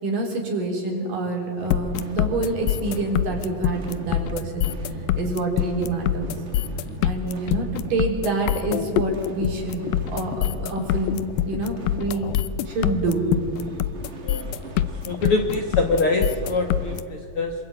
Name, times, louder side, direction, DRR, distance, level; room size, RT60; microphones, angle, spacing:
voice 1, 0.0-4.7 5.2-6.3 7.0-12.3 12.7-13.3, right 2 dB, 70° right, 0 dB, 5.7 m, -27 dB
sound 1, 1.6-17.0, right 2 dB, 50° right, 0.8 m, -38 dB
sound 2, 1.7-17.0, left 13 dB, 90° left, 2.5 m, -25 dB
voice 2, 14.2-14.6 15.0-17.5, left 3 dB, 55° left, 4 dB, 1.7 m, -24 dB
26.5 x 22.0 x 9.0 m, 2.3 s
omnidirectional pair, 4.0 m